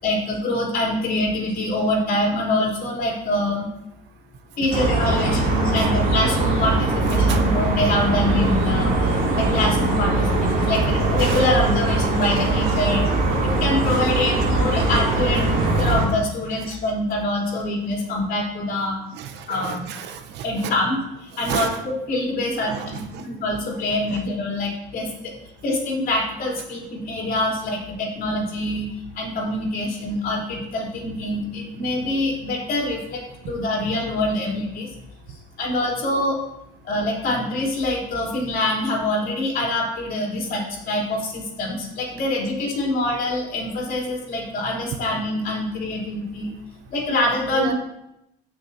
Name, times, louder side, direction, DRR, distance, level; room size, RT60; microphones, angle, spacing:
voice 1, 0.0-3.7 4.6-13.0 13.4-19.0 19.5-19.9 20.4-21.7 22.1-25.3 25.6-28.9 29.1-34.9 35.6-36.4 36.8-46.5 46.9-47.7, left 1 dB, 50° left, -2 dB, 3.5 m, -25 dB
sound 1, 4.7-16.1, right 2 dB, 45° right, 2.9 m, -21 dB
voice 2, 5.1-5.9 7.1-7.4 10.7-10.9 11.3-11.4 12.6-12.8 14.4-14.5 14.8-14.9 15.8-15.9 16.5-16.8 19.1-20.7 21.3-21.8 22.6-23.2 23.9-24.2 47.5-47.7, right 8 dB, 60° right, 6 dB, 0.9 m, -33 dB
16.0 x 6.3 x 2.8 m, 0.85 s
cardioid pair, 125°, 20 cm